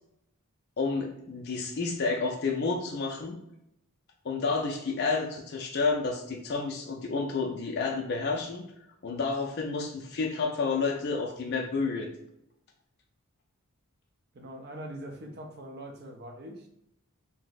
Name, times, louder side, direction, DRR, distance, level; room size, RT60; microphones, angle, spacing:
voice 1, 0.8-3.4 4.2-8.6 9.0-12.1, left 4 dB, 45° left, 1 dB, 0.4 m, -30 dB
voice 2, 14.3-16.7, right 1 dB, 45° right, 3 dB, 0.5 m, -42 dB
2.7 x 2.0 x 3.9 m, 0.79 s
head